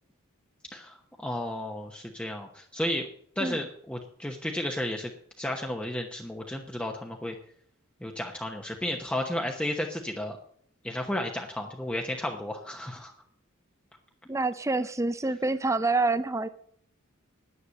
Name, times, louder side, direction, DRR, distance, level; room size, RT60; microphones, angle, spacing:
voice 1, 0.7-3.1 3.4-5.1 5.4-7.4 8.0-10.4 10.8-13.1, left 1 dB, 5° left, 1 dB, 0.9 m, -33 dB
voice 2, 14.3-16.5, right 3 dB, 15° right, 13 dB, 0.5 m, -27 dB
10.0 x 9.8 x 6.4 m, 0.64 s
head